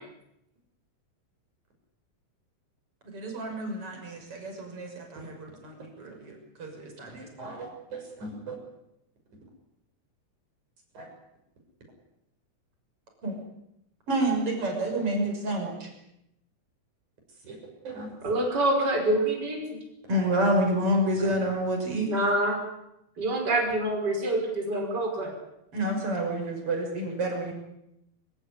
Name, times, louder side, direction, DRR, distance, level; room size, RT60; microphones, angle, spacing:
voice 1, 3.1-7.6 13.2-13.4 14.1-15.9 20.1-22.1 25.7-27.5, right 1 dB, 50° right, 2 dB, 7.1 m, -29 dB
voice 2, 7.4-8.6 11.0-11.1 17.4-17.6 17.8-18.1, right 3 dB, 85° right, 2 dB, 7.9 m, -39 dB
voice 3, 18.2-19.6 22.1-22.6 23.2-25.3, right 1 dB, 35° right, 2 dB, 5.9 m, -26 dB
26.5 x 17.0 x 10.0 m, 0.82 s
omnidirectional pair, 3.3 m